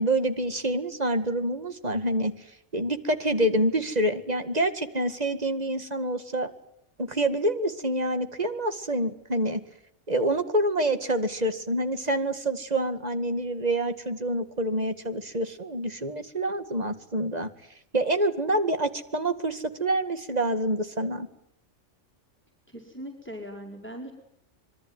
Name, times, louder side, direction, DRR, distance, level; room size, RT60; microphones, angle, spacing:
voice 1, 0.0-2.3 2.7-6.5 7.0-9.6 10.1-17.5 17.9-21.3, right 1 dB, 35° right, 9 dB, 2.1 m, -27 dB
voice 2, 22.7-24.1, equal, 10° left, 1 dB, 4.7 m, -40 dB
26.0 x 23.0 x 9.6 m, 0.75 s
omnidirectional pair, 1.3 m